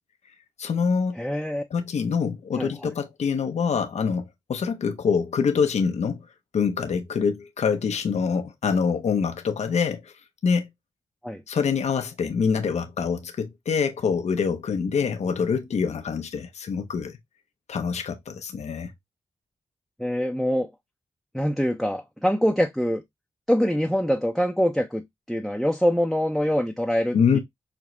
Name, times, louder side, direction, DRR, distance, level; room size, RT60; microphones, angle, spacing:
voice 1, 0.6-1.2 1.7-6.2 6.5-10.1 10.4-10.7 11.5-17.2 17.7-18.9 27.1-27.4, left 6 dB, 70° left, 0.6 m, -25 dB
voice 2, 1.2-1.6 2.6-2.9 11.2-11.4 20.0-20.7 21.3-23.0 23.5-27.4, equal, ahead, 0.5 m, -24 dB
5.0 x 2.1 x 2.9 m
cardioid pair, 60°, 12 cm